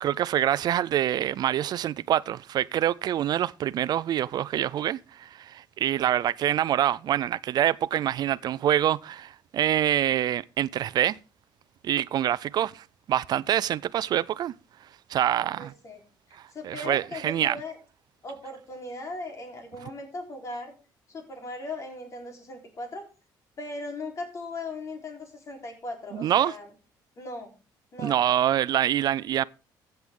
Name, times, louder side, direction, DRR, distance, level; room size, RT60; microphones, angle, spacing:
voice 1, 0.0-11.1 11.8-14.5 15.1-15.7 16.6-17.6 26.1-26.5 28.0-29.4, right 11 dB, 55° right, 0.4 m, -25 dB
voice 2, 15.6-16.0 16.3-17.8 18.2-20.7 21.1-23.0 23.6-26.7 27.2-27.5 27.9-28.2, left 2 dB, 40° left, 3.9 m, -38 dB
15.0 x 7.8 x 3.7 m
cardioid pair, 125°, 8 cm